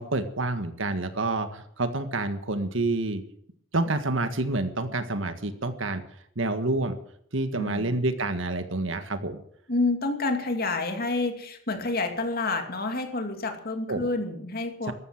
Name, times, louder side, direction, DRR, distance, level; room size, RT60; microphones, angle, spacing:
voice 1, 0.0-3.2 3.7-6.0 6.4-7.0 7.3-9.4 13.9-14.1 14.8-14.9, right 2 dB, 70° right, 9 dB, 1.7 m, -28 dB
voice 2, 9.7-14.9, left 3 dB, 50° left, 6 dB, 2.6 m, -28 dB
14.0 x 12.5 x 7.6 m, 0.68 s
head